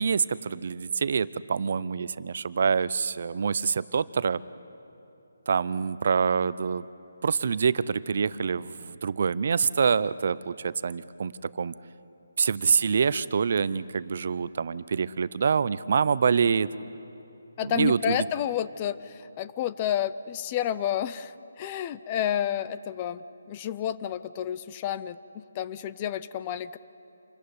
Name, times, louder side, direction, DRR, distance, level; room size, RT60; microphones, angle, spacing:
voice 1, 0.0-4.4 5.5-6.9 7.2-11.7 12.4-16.7 17.6-18.2, right 6 dB, 50° right, 17 dB, 0.6 m, -26 dB
voice 2, 17.6-26.8, left 10 dB, 25° left, 14 dB, 0.5 m, -30 dB
27.0 x 14.5 x 9.6 m, 2.8 s
hypercardioid pair, 165°, 0 cm